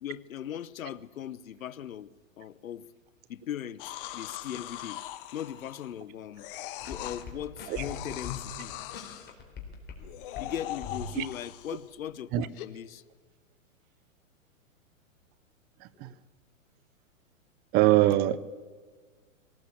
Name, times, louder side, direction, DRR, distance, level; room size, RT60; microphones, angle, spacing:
voice 1, 0.0-2.1 2.4-2.9 3.3-3.8 4.1-5.0 5.3-6.4 6.9-8.7 10.4-13.0 15.9-16.1, left 10 dB, 85° left, 17 dB, 1.0 m, -39 dB
sound 1, 3.8-6.0 6.4-7.2 7.7-9.3 10.0-11.9 12.5-12.7, left 14 dB, 40° left, 1.3 m, -41 dB
sound 2, 6.8-10.1 10.3-11.4, left 6 dB, 25° left, 3.9 m, -42 dB
voice 2, 15.8-16.1 17.7-18.4, right 16 dB, 25° right, 18 dB, 0.6 m, -23 dB
23.0 x 18.0 x 8.5 m, 1.5 s
hypercardioid pair, 140°, 40 cm